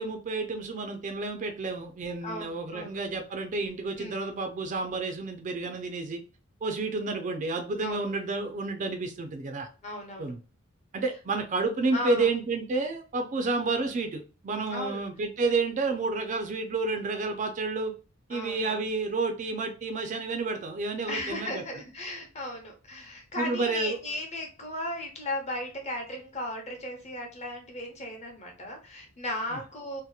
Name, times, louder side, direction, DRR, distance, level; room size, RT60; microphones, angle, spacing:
voice 1, 0.0-6.2 6.6-9.7 10.2-10.4 10.9-17.9 18.3-21.6 23.4-24.0, right 3 dB, 40° right, 6 dB, 0.4 m, -30 dB
voice 2, 2.2-3.0 4.0-4.2 7.8-8.1 9.8-10.3 11.9-12.3 14.7-15.0 18.3-18.9 21.1-30.0, left 1 dB, 35° left, 2 dB, 0.8 m, -36 dB
2.8 x 2.0 x 2.3 m, 0.35 s
head